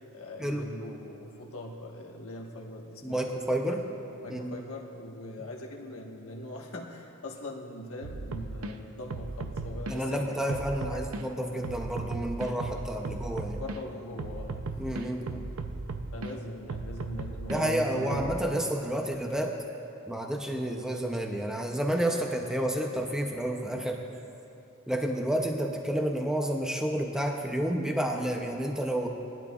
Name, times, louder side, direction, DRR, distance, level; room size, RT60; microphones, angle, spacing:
voice 1, 0.1-3.4 3.7-3.8 4.2-11.1 13.0-14.6 16.1-18.4, left 1 dB, 75° left, 0 dB, 1.3 m, -41 dB
voice 2, 3.0-3.8 4.3-4.6 9.9-13.6 14.8-15.4 17.5-19.5 20.1-24.0 24.9-29.1, right 1 dB, 5° right, 2 dB, 0.6 m, -30 dB
sound 1, 8.0-8.7 9.1-10.0 10.5-11.2 11.6-13.8 14.2-16.3 16.7-18.4, right 3 dB, 70° right, 0.6 m, -36 dB
19.0 x 12.0 x 2.4 m, 2.8 s
head